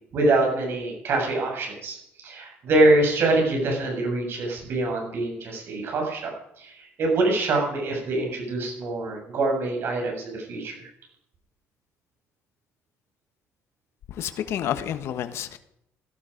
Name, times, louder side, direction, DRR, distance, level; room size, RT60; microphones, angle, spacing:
voice 1, 0.1-10.7, right 2 dB, 50° right, 1 dB, 7.3 m, -24 dB
voice 2, 14.1-15.6, left 10 dB, 60° left, 10 dB, 1.3 m, -29 dB
17.0 x 12.5 x 5.2 m, 0.76 s
cardioid pair, 145°, 5 cm